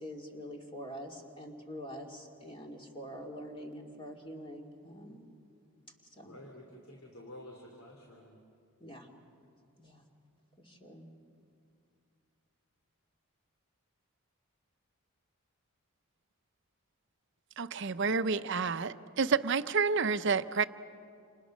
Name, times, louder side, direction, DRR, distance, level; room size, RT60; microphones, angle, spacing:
voice 1, 0.0-5.2 6.2-6.3 8.8-9.1 9.8-10.0 10.6-11.1, equal, 25° left, 1 dB, 2.5 m, -45 dB
voice 2, 6.2-8.4, left 1 dB, 75° left, 0 dB, 3.1 m, -50 dB
voice 3, 17.6-20.6, right 5 dB, 55° right, 12 dB, 0.7 m, -29 dB
28.5 x 28.5 x 6.4 m, 2.4 s
head